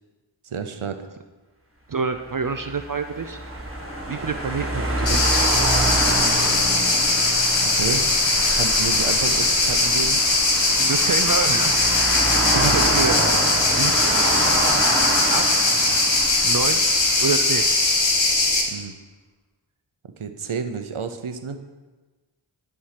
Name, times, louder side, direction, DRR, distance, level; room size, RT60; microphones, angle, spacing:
voice 1, 0.4-1.0 7.6-8.1 8.5-10.2 12.5-12.8 18.7-19.0 20.2-21.6, right 6 dB, 85° right, 8 dB, 0.8 m, -30 dB
voice 2, 1.9-3.4 4.1-5.5 10.8-11.7 12.5-13.2 13.7-14.0 15.3-15.7 16.4-16.8 17.2-17.6, right 5 dB, 45° right, 8 dB, 0.5 m, -27 dB
sound 1, 2.3-17.7, right 1 dB, 25° right, 1.8 m, -27 dB
sound 2, 5.1-18.6, left 2 dB, 65° left, 1.4 m, -20 dB
11.5 x 4.7 x 5.8 m, 1.3 s
wide cardioid pair, 45°, 48 cm